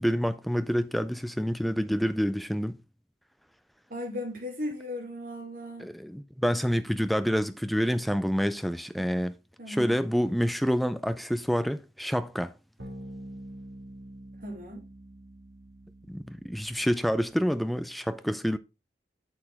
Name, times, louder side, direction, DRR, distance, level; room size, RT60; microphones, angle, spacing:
voice 1, 0.0-2.8 5.8-9.4 9.7-12.5 16.1-18.6, equal, ahead, 0.4 m, -28 dB
voice 2, 3.9-5.9 9.6-9.9 14.4-14.9, left 1 dB, 50° right, 2.9 m, -36 dB
sound 1, 12.8-17.6, right 1 dB, 85° right, 2.3 m, -46 dB
8.5 x 6.8 x 3.5 m
head